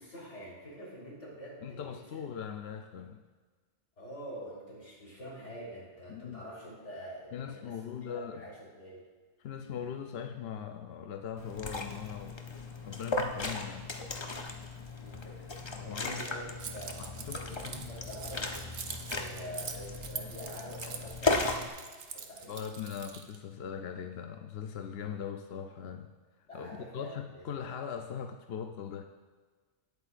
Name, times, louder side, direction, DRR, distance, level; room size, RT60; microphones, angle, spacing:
voice 1, 0.0-2.3 4.0-9.1 14.5-14.6 15.0-15.4 15.8-17.0 17.4-18.5 19.0-21.7 22.1-22.5 26.5-27.7, equal, 85° left, -5 dB, 4.0 m, -46 dB
voice 2, 1.6-3.2 6.1-6.5 7.3-8.4 9.4-12.4 12.9-13.9 15.8-16.3 17.0-17.8 22.5-26.1 26.5-29.0, left 8 dB, 65° left, 5 dB, 0.8 m, -40 dB
Liquid, 11.4-21.7, left 3 dB, 30° left, 0.7 m, -36 dB
Keys jangling, 16.6-23.4, right 6 dB, 65° right, 1.0 m, -44 dB
18.5 x 8.4 x 2.5 m, 1.4 s
omnidirectional pair, 1.2 m